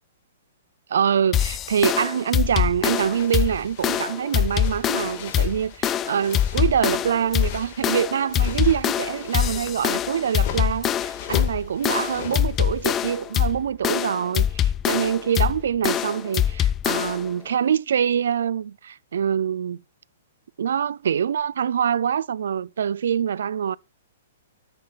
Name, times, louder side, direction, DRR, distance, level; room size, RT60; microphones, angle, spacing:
voice 1, 0.9-19.8 20.6-23.8, right 8 dB, 75° right, 0.3 m, -25 dB
sound 1, 1.3-17.3, left 10 dB, 25° left, 0.3 m, -24 dB
sound 2, 3.1-13.3, left 8 dB, 45° left, 1.8 m, -39 dB
9.8 x 5.8 x 2.4 m
hypercardioid pair, 140°, 0 cm